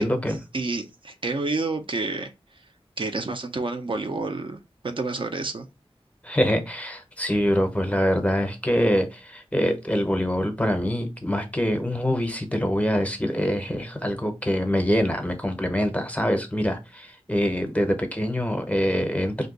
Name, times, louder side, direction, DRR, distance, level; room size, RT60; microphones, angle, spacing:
voice 1, 0.0-0.4 6.2-19.5, equal, 15° left, 0.6 m, -24 dB
voice 2, 0.5-2.6 3.0-5.7, right 3 dB, 55° right, 0.4 m, -29 dB
2.6 x 2.2 x 3.8 m
wide cardioid pair, 70°, 10 cm